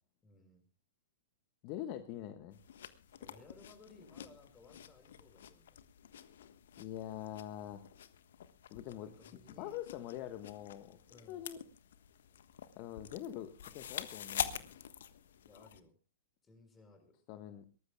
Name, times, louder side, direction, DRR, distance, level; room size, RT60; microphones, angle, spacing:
voice 1, 0.2-0.6 3.2-5.8 9.0-9.8 11.1-11.5 15.4-15.9 16.4-17.2, left 3 dB, 15° left, 6 dB, 6.1 m, -60 dB
voice 2, 1.6-2.6 6.8-7.8 8.7-9.1 9.6-11.0 11.3-11.6 12.8-14.7 17.3-17.7, left 11 dB, 40° left, 9 dB, 1.3 m, -44 dB
sound 1, 2.5-15.8, left 9 dB, 60° left, 1.4 m, -47 dB
23.0 x 18.5 x 2.3 m, 0.34 s
figure-of-eight pair, 105°, 0 cm